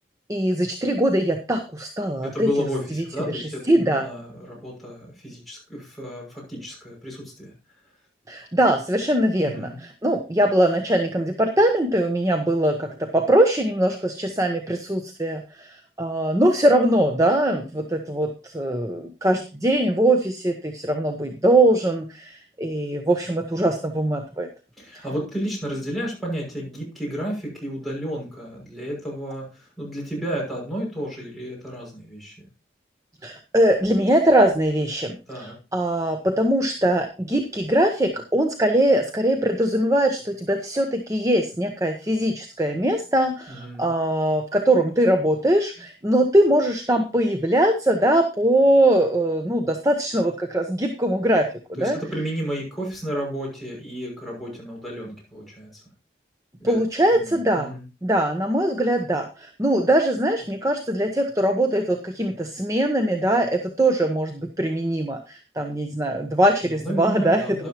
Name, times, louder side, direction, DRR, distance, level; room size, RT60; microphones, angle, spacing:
voice 1, 0.3-2.5 3.3-4.1 8.3-24.5 33.2-52.0 56.6-57.7 58.0-67.7, right 1 dB, 20° right, 5 dB, 0.9 m, -21 dB
voice 2, 2.2-7.5 9.4-9.8 24.8-32.5 35.3-35.6 43.5-43.9 51.8-55.8 56.6-56.8 57.2-57.9 66.6-67.7, equal, ahead, -4 dB, 6.3 m, -32 dB
12.5 x 11.0 x 3.0 m, 0.31 s
head